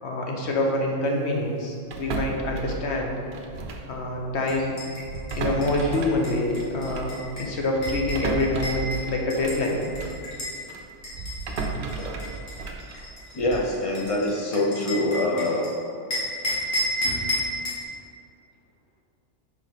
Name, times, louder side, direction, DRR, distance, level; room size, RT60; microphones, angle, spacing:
voice 1, 0.0-3.1 3.9-4.8 5.3-9.8, left 2 dB, 65° left, 0 dB, 1.2 m, -26 dB
sound 1, 1.9-4.0 4.2-4.4 5.0-10.3 10.7-13.8, right 3 dB, 65° right, 0.9 m, -33 dB
sound 2, 4.5-10.6 11.0-15.7 16.1-17.8, equal, 90° left, 2.0 m, -32 dB
voice 2, 13.3-15.7, left 1 dB, 35° left, 0 dB, 0.6 m, -25 dB
4.8 x 4.7 x 5.8 m, 2.4 s
omnidirectional pair, 1.3 m